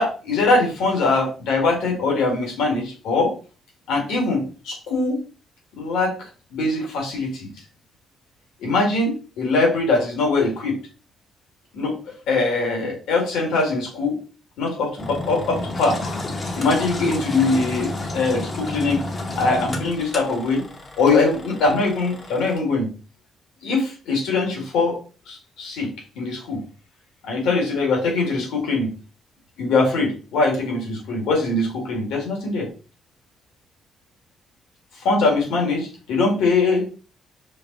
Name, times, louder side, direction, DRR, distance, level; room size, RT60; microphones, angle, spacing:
voice 1, 0.0-3.3 3.9-5.2 5.8-6.1 6.5-7.5 8.6-10.8 11.7-11.9 12.3-14.2 14.6-16.0 16.5-19.0 19.4-20.6 21.0-22.9 23.6-25.0 25.3-25.9 26.2-26.6 27.2-28.9 29.6-32.7 35.0-36.9, left 3 dB, 90° left, 0 dB, 1.9 m, -22 dB
Engine, 15.0-22.5, left 2 dB, 35° left, 0.9 m, -31 dB
5.0 x 2.1 x 3.9 m, 0.37 s
cardioid pair, 90°, 0 cm